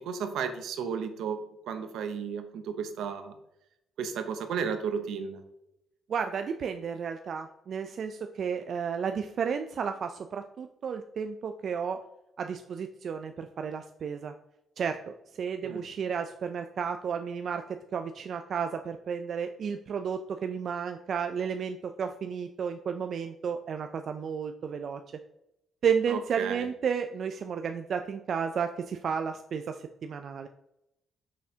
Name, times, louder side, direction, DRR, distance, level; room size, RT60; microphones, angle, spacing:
voice 1, 0.0-3.4 4.0-5.4 15.6-15.9 26.1-26.7, right 6 dB, 80° right, 8 dB, 0.7 m, -34 dB
voice 2, 6.1-12.0 12.4-14.3 14.8-25.0 25.8-30.5, right 6 dB, 55° right, 7 dB, 0.3 m, -32 dB
6.3 x 5.9 x 2.8 m, 0.84 s
cardioid pair, 90°, 0 cm